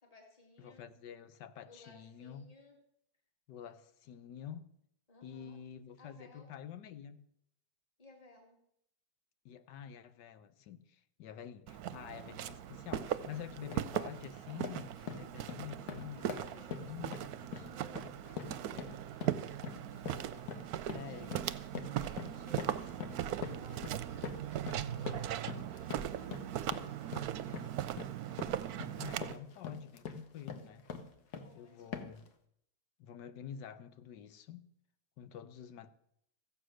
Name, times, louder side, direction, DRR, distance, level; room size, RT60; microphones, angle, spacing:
voice 1, 0.0-0.9 1.7-2.8 5.1-5.6 6.0-6.5 8.0-8.6 16.1-19.0 21.0-21.4 21.7-27.8 31.3-32.0, left 1 dB, 20° left, 2.5 m, -59 dB
voice 2, 0.6-2.5 3.5-4.7 5.2-7.2 9.4-17.1 20.9-21.4 29.0-30.8 31.5-32.3 33.0-34.7 35.2-35.9, left 9 dB, 85° left, 1.5 m, -48 dB
Walk footsteps, 11.7-29.4, right 11 dB, 70° right, 1.0 m, -39 dB
sound 1, 12.9-13.1 13.5-13.9 14.3-31.6 31.9-32.3, left 6 dB, 65° left, 1.6 m, -45 dB
15.0 x 8.0 x 6.4 m
omnidirectional pair, 1.9 m